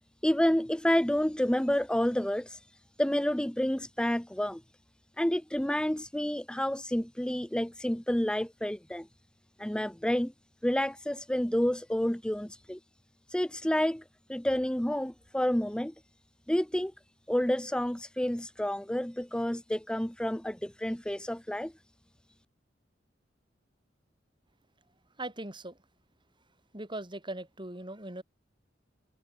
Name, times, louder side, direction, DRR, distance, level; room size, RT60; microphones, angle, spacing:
voice 1, 0.2-2.7 3.0-4.6 5.2-9.1 9.6-10.3 10.6-12.8 13.3-14.0 14.3-15.9 16.5-16.9 17.3-21.7, equal, 5° left, 0.6 m, -29 dB
voice 2, 25.2-25.8 26.7-28.2, right 1 dB, 25° right, 6.4 m, -39 dB
head